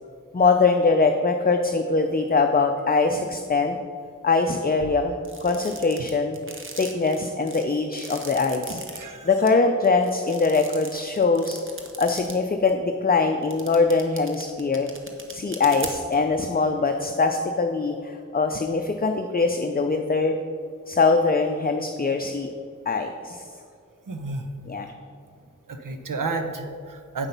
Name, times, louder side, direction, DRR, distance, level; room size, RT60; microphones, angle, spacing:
voice 1, 0.3-3.8 4.2-6.4 6.8-8.8 9.2-11.6 12.0-14.9 15.3-20.4 20.9-22.5 22.9-23.5 24.7-24.9, left 4 dB, 30° left, 5 dB, 0.5 m, -22 dB
sound 1, 5.2-9.0 9.5-9.6 9.8-12.3 12.7-12.8 13.4-16.1, right 2 dB, 40° right, 1.2 m, -38 dB
voice 2, 8.9-9.3 24.1-24.5 25.7-27.3, right 3 dB, 85° right, 6 dB, 0.8 m, -31 dB
8.0 x 5.7 x 5.3 m, 2.3 s
cardioid pair, 40°, 31 cm